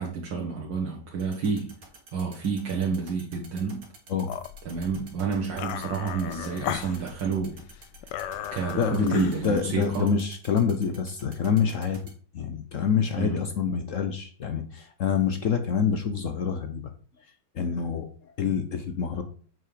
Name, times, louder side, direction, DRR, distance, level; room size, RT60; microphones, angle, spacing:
voice 1, 0.0-1.8 2.1-3.9 4.7-7.6 8.5-10.1 13.1-13.4, right 5 dB, 85° right, -3 dB, 2.1 m, -29 dB
sound 1, 1.2-12.1, right 4 dB, 50° right, 2.3 m, -48 dB
sound 2, 4.3-10.0, left 10 dB, 75° left, 1.2 m, -37 dB
voice 2, 8.8-12.0 12.3-16.8 17.5-18.1 18.4-19.2, left 6 dB, 55° left, 8 dB, 1.0 m, -26 dB
7.6 x 5.4 x 5.0 m, 0.43 s
omnidirectional pair, 1.9 m